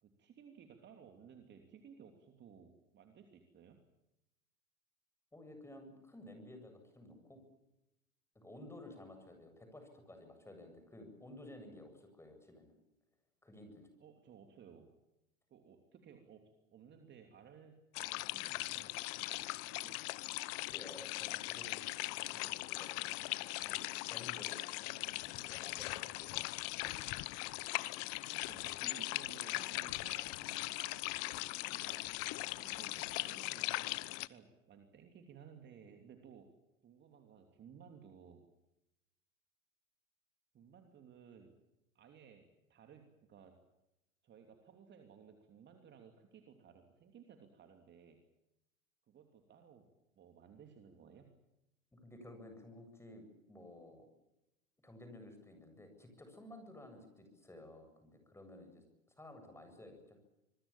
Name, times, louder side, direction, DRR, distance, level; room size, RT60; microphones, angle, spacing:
voice 1, 0.0-3.8 14.0-14.9 15.5-17.8 18.1-19.0 19.3-20.0 24.7-25.3 28.3-31.1 31.6-32.1 32.5-36.5 36.8-38.5 40.5-41.6 41.9-43.6 44.2-48.2 49.1-49.9 50.1-51.3, right 7 dB, 25° right, 5 dB, 3.0 m, -58 dB
voice 2, 5.3-7.4 8.3-12.8 13.4-13.9 20.3-23.2 23.6-24.8 25.2-27.0 31.2-31.5 51.9-54.1 54.8-58.8 59.2-60.2, left 1 dB, 5° left, 6 dB, 7.8 m, -54 dB
sound 1, 18.0-34.3, left 23 dB, 35° left, 1.0 m, -40 dB
26.0 x 23.0 x 7.4 m, 0.89 s
figure-of-eight pair, 100°, 41 cm